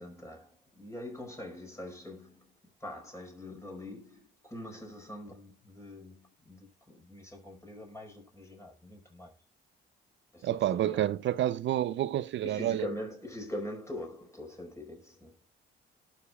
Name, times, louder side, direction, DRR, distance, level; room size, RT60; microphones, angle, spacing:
voice 1, 0.0-2.5 2.8-9.3 10.3-11.2 12.4-15.3, left 1 dB, 15° left, 4.7 m, -43 dB
voice 2, 10.4-12.9, right 12 dB, 65° right, 0.6 m, -29 dB
18.5 x 6.8 x 2.3 m
cardioid pair, 90°, 20 cm